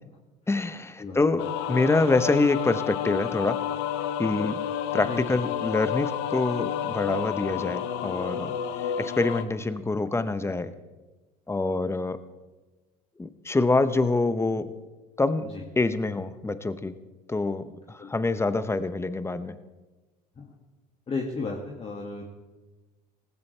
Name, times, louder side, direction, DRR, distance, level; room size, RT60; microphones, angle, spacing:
voice 1, 0.5-3.6 4.2-4.6 4.9-8.5 8.8-10.7 11.5-12.2 13.2-14.6 15.2-15.5 15.8-16.9 17.3-19.6, left 3 dB, 10° left, 12 dB, 1.0 m, -26 dB
sound 1, 1.4-9.4, left 9 dB, 70° left, 1.1 m, -30 dB
voice 2, 21.1-22.2, left 4 dB, 30° left, -1 dB, 2.1 m, -33 dB
18.0 x 15.5 x 3.4 m, 1.2 s
hypercardioid pair, 80°, 21 cm